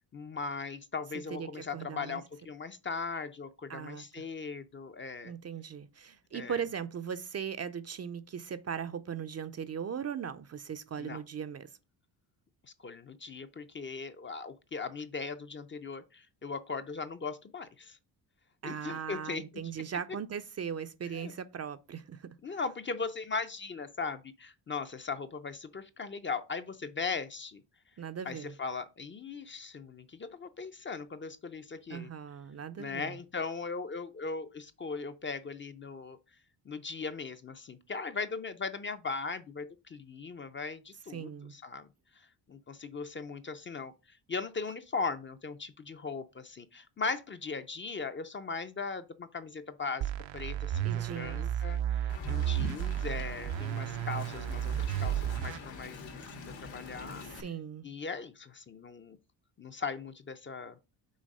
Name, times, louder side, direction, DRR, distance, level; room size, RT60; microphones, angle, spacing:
voice 1, 0.1-5.3 6.3-6.6 11.0-11.2 12.8-18.0 18.6-19.4 21.1-21.3 22.4-27.6 28.3-32.1 32.8-36.2 36.7-41.9 42.2-56.2 56.6-57.4 57.8-59.2 59.6-60.8, left 4 dB, 25° left, 0.5 m, -39 dB
voice 2, 1.4-2.2 3.7-4.2 5.2-11.7 18.6-22.6 28.0-28.5 31.9-33.2 41.1-41.5 50.8-51.4 57.2-57.9, right 7 dB, 35° right, 0.4 m, -39 dB
sound 1, 50.0-55.6, right 11 dB, 80° right, 0.6 m, -33 dB
Wind, 52.1-57.4, left 3 dB, 80° left, 1.9 m, -44 dB
6.3 x 3.9 x 5.3 m
cardioid pair, 145°, 44 cm